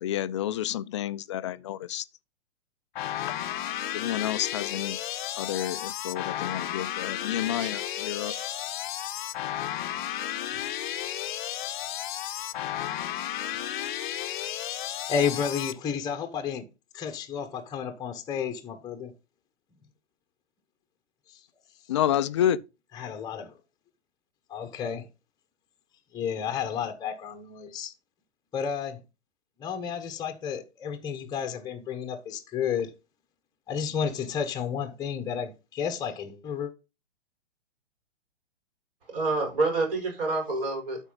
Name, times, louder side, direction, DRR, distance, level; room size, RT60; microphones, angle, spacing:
voice 1, 0.0-2.0 3.5-5.0 5.4-8.4 21.9-22.6, left 11 dB, 30° left, 0.4 m, -29 dB
sound 1, 3.0-15.7, left 12 dB, 45° left, 0.7 m, -33 dB
voice 2, 15.1-16.7 16.9-19.1 23.0-23.5 24.5-25.1 26.1-27.9 28.5-29.0 29.6-32.9 33.7-36.7, left 7 dB, 10° left, 1.0 m, -31 dB
voice 3, 39.1-41.0, right 3 dB, 50° right, 5.5 m, -28 dB
12.5 x 4.5 x 4.0 m
figure-of-eight pair, 120°, 34 cm